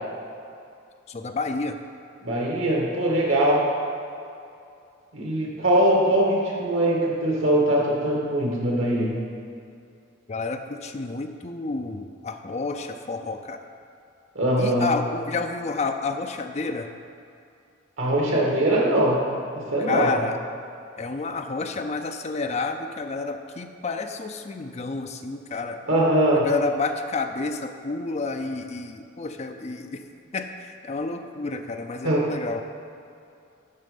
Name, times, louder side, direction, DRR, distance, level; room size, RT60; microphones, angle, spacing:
voice 1, 1.1-1.8 10.3-13.6 14.6-16.9 19.8-20.4 21.0-25.8 26.4-30.0 30.3-32.6, left 3 dB, 35° left, 6 dB, 0.5 m, -30 dB
voice 2, 2.2-3.7 5.1-9.1 14.4-14.9 18.0-19.2 19.6-20.1 25.9-26.5 32.0-32.3, right 1 dB, 80° right, -3 dB, 2.0 m, -22 dB
12.0 x 4.2 x 5.2 m, 2.5 s
head